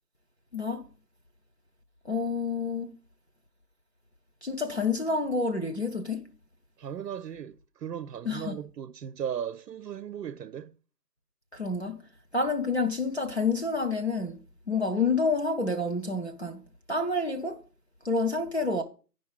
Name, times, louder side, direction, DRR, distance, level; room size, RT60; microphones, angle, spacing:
voice 1, 0.5-0.8 2.0-2.9 4.4-6.2 8.3-8.6 11.5-12.0 12.3-14.4 14.7-16.6 16.9-17.6 18.0-18.8, left 3 dB, 45° left, 0.6 m, -28 dB
voice 2, 6.8-10.7, right 9 dB, 85° right, 0.6 m, -37 dB
9.5 x 5.4 x 5.3 m
figure-of-eight pair, 175°, 48 cm